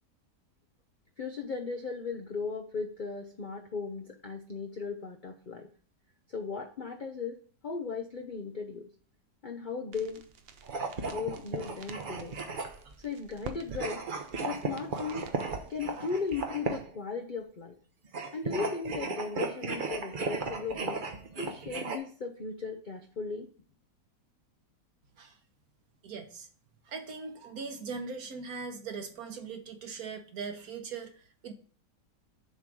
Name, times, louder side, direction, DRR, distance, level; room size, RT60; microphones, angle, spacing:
voice 1, 1.2-5.7 6.3-7.4 7.6-8.8 9.4-10.2 11.1-12.3 13.0-14.0 14.4-15.3 15.7-17.8 18.3-21.0 21.4-23.5, left 5 dB, 70° left, 4 dB, 0.4 m, -36 dB
sound 1, 9.9-16.5, right 5 dB, 90° right, 0.5 m, -49 dB
sound 2, 10.6-13.0 13.7-17.0 18.0-22.0, right 4 dB, 45° right, 0.7 m, -35 dB
voice 2, 26.0-26.5 26.9-31.5, right 5 dB, 60° right, 6 dB, 1.3 m, -40 dB
7.0 x 3.7 x 6.0 m, 0.43 s
omnidirectional pair, 1.9 m